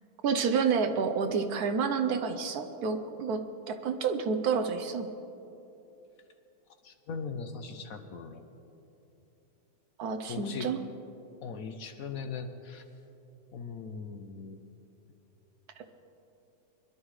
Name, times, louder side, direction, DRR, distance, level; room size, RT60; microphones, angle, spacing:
voice 1, 0.2-3.4 3.7-5.1 10.0-10.8, right 5 dB, 65° right, 7 dB, 1.2 m, -29 dB
voice 2, 6.8-8.4 10.3-10.7 11.4-12.8 13.5-14.6, left 5 dB, 65° left, 7 dB, 1.1 m, -39 dB
23.0 x 11.5 x 3.2 m, 2.9 s
omnidirectional pair, 1.8 m